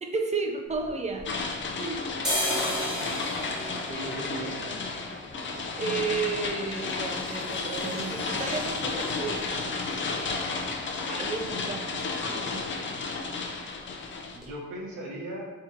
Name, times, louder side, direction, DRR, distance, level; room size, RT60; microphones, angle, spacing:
voice 1, 0.0-1.3 1.8-2.2 5.8-9.8 11.1-12.0 12.3-12.6, right 4 dB, 20° right, 3 dB, 0.6 m, -33 dB
sound 1, 0.7-1.7 2.1-9.8 10.1-10.2 10.4-11.0 11.3-11.5 11.8-12.0 12.3-13.0 13.4-13.5 14.0-14.1 14.4-14.5, equal, ahead, 1.4 m, -36 dB
sound 2, 1.2-14.4, left 4 dB, 40° left, 0.6 m, -32 dB
voice 2, 3.9-4.8 11.6-12.3 14.3-15.5, right 1 dB, 90° right, -2 dB, 1.1 m, -39 dB
sound 3, 6.6-11.4, right 5 dB, 65° right, 0.7 m, -52 dB
3.6 x 2.8 x 4.7 m, 1.2 s
cardioid pair, 90°, 30 cm